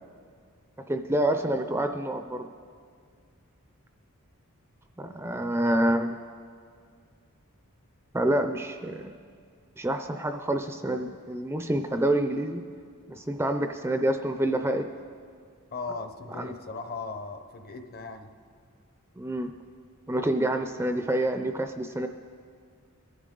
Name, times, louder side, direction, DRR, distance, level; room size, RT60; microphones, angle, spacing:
voice 1, 0.9-2.5 5.0-6.2 8.1-9.1 9.8-12.6 13.1-14.8 16.4-16.5 19.2-19.5 20.1-22.1, right 1 dB, 10° right, 7 dB, 0.4 m, -27 dB
voice 2, 15.7-18.3, left 4 dB, 45° left, 7 dB, 0.8 m, -37 dB
22.0 x 11.0 x 3.8 m, 2.1 s
head